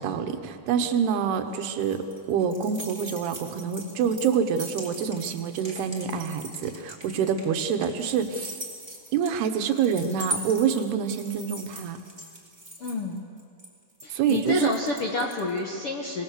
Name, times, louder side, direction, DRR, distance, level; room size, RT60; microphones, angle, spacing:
voice 1, 0.0-8.6 9.1-12.0 14.1-14.7, right 7 dB, 85° right, 7 dB, 3.2 m, -26 dB
sound 1, 1.3-15.6, right 1 dB, 10° right, 2.3 m, -40 dB
voice 2, 12.8-13.2 14.0-16.2, left 2 dB, 60° left, 0 dB, 1.5 m, -29 dB
24.5 x 19.5 x 6.8 m, 2.2 s
omnidirectional pair, 4.5 m